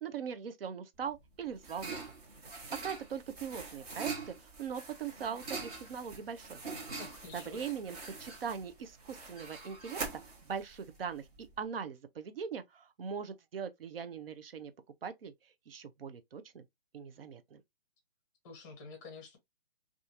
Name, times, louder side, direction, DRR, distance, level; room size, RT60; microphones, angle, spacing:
voice 1, 0.0-2.0 2.8-6.6 7.3-10.0 10.4-14.7 15.0-15.3 15.7-16.6 16.9-17.6, right 7 dB, 70° right, 0.5 m, -41 dB
sound 1, 1.0-11.6, right 4 dB, 40° right, 1.0 m, -44 dB
voice 2, 7.0-7.7 18.4-19.4, left 4 dB, 20° left, 0.7 m, -49 dB
2.6 x 2.4 x 2.5 m
hypercardioid pair, 145°, 31 cm